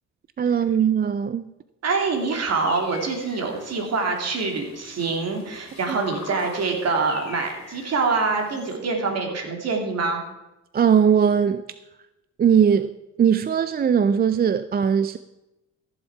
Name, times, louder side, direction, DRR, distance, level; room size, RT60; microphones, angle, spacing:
voice 1, 0.4-1.5 5.9-6.0 10.7-11.6 12.4-12.9 13.2-15.2, right 7 dB, 30° right, 0.4 m, -19 dB
voice 2, 1.8-10.2, right 4 dB, 55° right, 2.6 m, -25 dB
sound 1, 2.1-8.8, left 6 dB, 65° left, 2.5 m, -44 dB
15.0 x 7.2 x 4.7 m
cardioid pair, 90°, 30 cm